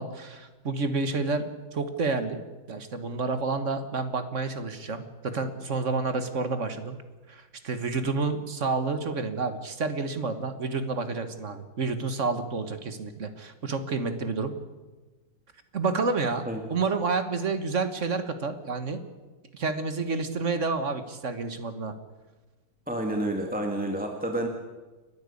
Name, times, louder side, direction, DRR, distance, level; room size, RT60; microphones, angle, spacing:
voice 1, 0.0-1.4 1.7-2.4 2.7-7.0 7.3-14.5 15.7-19.0 19.5-21.9, right 4 dB, 40° right, 9 dB, 1.5 m, -29 dB
voice 2, 22.9-24.5, right 1 dB, 5° right, 2 dB, 1.5 m, -29 dB
29.5 x 10.5 x 8.5 m, 1.2 s
omnidirectional pair, 2.3 m